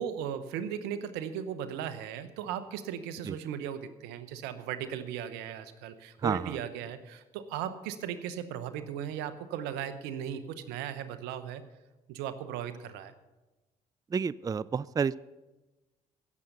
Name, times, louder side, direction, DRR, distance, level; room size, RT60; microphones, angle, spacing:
voice 1, 0.0-11.6 12.1-13.1, right 9 dB, 85° right, 12 dB, 0.9 m, -37 dB
voice 2, 6.2-6.5 14.1-15.2, right 6 dB, 20° right, 20 dB, 0.3 m, -30 dB
17.0 x 7.3 x 6.7 m, 1.1 s
supercardioid pair, 55°, 17 cm